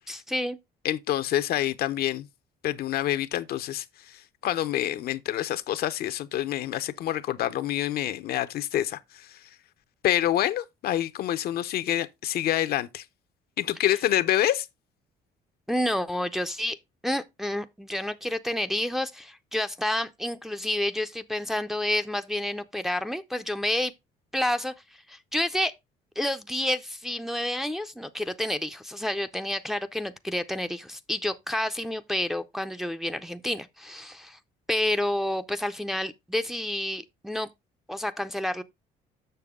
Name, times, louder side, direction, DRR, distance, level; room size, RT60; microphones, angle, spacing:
voice 1, 0.1-0.6 15.7-16.8 17.0-23.9 24.3-25.7 26.2-34.4 34.7-37.5 37.9-38.6, left 1 dB, ahead, 0.5 m, -29 dB
voice 2, 0.8-2.3 2.6-9.4 10.0-13.0 13.6-14.7, left 12 dB, 65° left, 0.7 m, -27 dB
6.8 x 6.5 x 3.6 m
cardioid pair, 110°, 17 cm